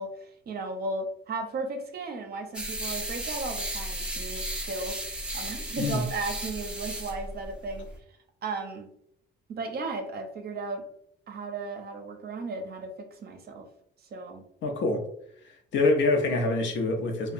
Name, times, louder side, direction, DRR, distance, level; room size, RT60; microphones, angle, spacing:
voice 1, 0.0-7.9 8.4-8.9 9.5-10.9 11.3-13.7 14.1-14.4, right 3 dB, 50° right, 5 dB, 0.5 m, -35 dB
sound 1, 2.5-8.0, right 1 dB, 5° right, 0.5 m, -35 dB
voice 2, 14.6-15.1 15.4-17.3, left 2 dB, 70° left, 3 dB, 0.6 m, -26 dB
2.8 x 2.2 x 2.5 m, 0.68 s
cardioid pair, 90°, 20 cm